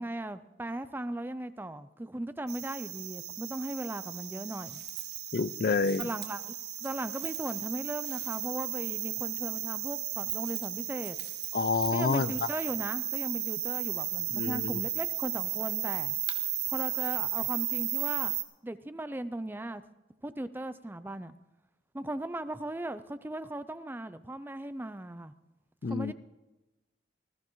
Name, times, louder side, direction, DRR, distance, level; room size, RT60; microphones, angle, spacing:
voice 1, 0.0-4.8 6.0-6.5 6.8-11.2 11.9-16.2 16.7-18.3 18.6-19.8 20.2-21.3 21.9-25.3 25.9-26.1, right 1 dB, 10° right, 12 dB, 0.4 m, -37 dB
sound 1, 2.5-18.4, right 12 dB, 60° right, 1.4 m, -34 dB
voice 2, 5.3-6.1 11.5-12.5 14.3-14.8 25.8-26.1, left 4 dB, 50° left, 15 dB, 0.4 m, -28 dB
20.0 x 14.0 x 3.1 m, 1.1 s
head